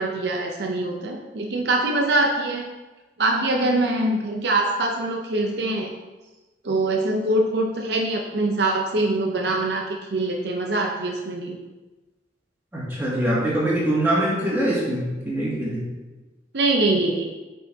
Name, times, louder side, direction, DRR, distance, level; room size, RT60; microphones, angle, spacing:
voice 1, 0.0-2.7 3.2-5.9 6.6-11.6 16.5-17.3, right 2 dB, 65° right, 1 dB, 0.7 m, -23 dB
voice 2, 12.7-15.8, right 1 dB, 10° right, -8 dB, 2.2 m, -23 dB
8.3 x 5.5 x 2.8 m, 1.2 s
head